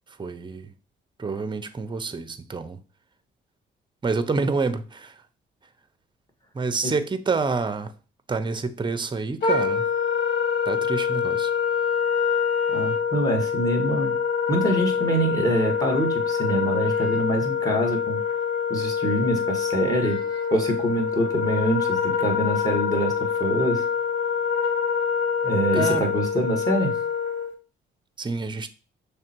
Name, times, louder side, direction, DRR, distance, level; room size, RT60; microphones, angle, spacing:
voice 1, 0.2-0.7 1.2-2.8 4.0-5.2 6.5-7.9 8.3-9.9 10.7-11.5 25.7-26.0 28.2-28.7, right 4 dB, 25° right, 0.7 m, -28 dB
Wind instrument woodwind instrument, 9.4-27.5, left 7 dB, 70° left, 1.6 m, -25 dB
voice 2, 12.7-14.2 14.5-18.2 18.7-20.2 20.5-23.1 23.4-23.8 25.4-26.9, right 1 dB, 20° left, 2.0 m, -25 dB
6.3 x 3.4 x 4.5 m
cardioid pair, 90°, 20 cm